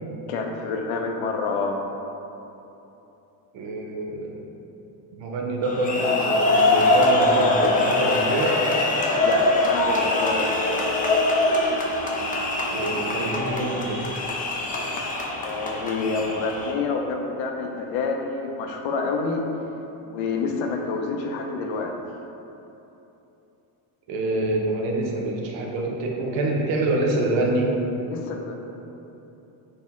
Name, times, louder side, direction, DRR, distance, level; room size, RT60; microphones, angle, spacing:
voice 1, 0.3-1.8 9.0-10.5 15.4-19.4 20.0-21.9 28.1-28.5, left 4 dB, 80° left, 2 dB, 0.7 m, -28 dB
voice 2, 3.5-4.4 5.2-8.6 12.7-14.1 24.1-27.7, right 2 dB, 70° right, -1 dB, 0.8 m, -26 dB
sound 1, 5.6-16.7, left 2 dB, 20° left, 0.3 m, -23 dB
Bowed string instrument, 9.5-13.4, right 6 dB, 15° right, 0.9 m, -40 dB
4.3 x 2.7 x 3.6 m, 3.0 s
cardioid pair, 115°, 47 cm